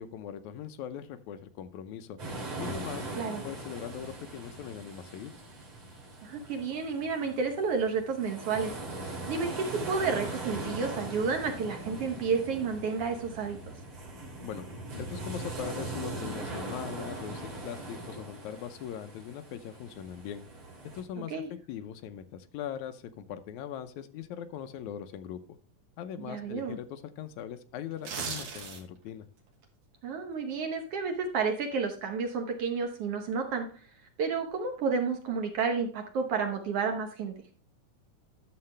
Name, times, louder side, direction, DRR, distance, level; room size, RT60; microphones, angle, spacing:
voice 1, 0.0-2.2 2.6-3.1 3.4-5.3 14.4-14.7 15.0-20.4 20.9-25.4 26.0-29.3, left 9 dB, 75° left, 8 dB, 2.0 m, -40 dB
sound 1, 2.2-21.0, right 2 dB, 45° right, 3.5 m, -40 dB
voice 2, 6.2-8.7 9.3-13.6 21.2-21.5 26.3-26.8 30.0-33.7 34.2-37.4, right 5 dB, 65° right, 4 dB, 1.6 m, -31 dB
sound 2, 27.9-29.1 29.5-29.6, right 5 dB, 85° right, 2.9 m, -37 dB
11.5 x 6.8 x 3.3 m, 0.42 s
omnidirectional pair, 3.5 m